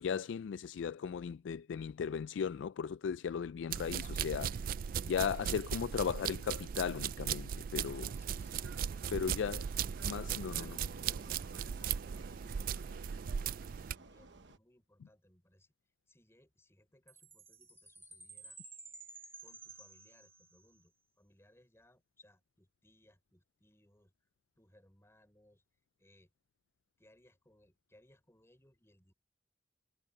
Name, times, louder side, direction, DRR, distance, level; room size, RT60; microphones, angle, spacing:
voice 1, 0.0-4.5 5.0-8.1 9.1-9.6 10.0-10.7, left 7 dB, 80° left, 0.3 m, -36 dB
sound 1, 3.7-14.0, right 8 dB, 50° right, 0.3 m, -38 dB
Vehicle, 7.7-14.6, right 3 dB, 70° right, 1.1 m, -54 dB
voice 2, 7.8-8.9 10.4-11.4 11.8-13.1 13.6-15.7 16.1-18.6 19.4-24.1 24.6-25.6 26.0-26.3 27.0-29.1, left 1 dB, 15° left, 5.2 m, -67 dB
Chime, 17.1-20.8, right 3 dB, 15° right, 1.6 m, -53 dB
head